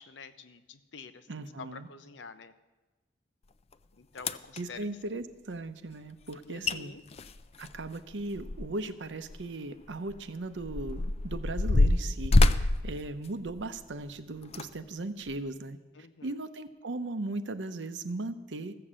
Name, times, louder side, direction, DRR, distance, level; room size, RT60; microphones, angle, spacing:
voice 1, 0.0-2.5 4.0-4.9 6.5-7.0 16.0-16.4, left 5 dB, 85° left, 11 dB, 0.7 m, -48 dB
voice 2, 1.3-1.9 4.6-6.9 7.6-15.8 16.2-18.7, right 2 dB, 90° right, 10 dB, 0.8 m, -38 dB
sound 1, 3.7-3.8 4.2-4.6 6.3-6.4 6.6-6.8 7.1-8.9 9.2-9.4 10.1-13.8 14.4-14.7 15.3-15.4, left 2 dB, 35° left, 0.4 m, -26 dB
14.5 x 6.8 x 7.4 m, 1.2 s
head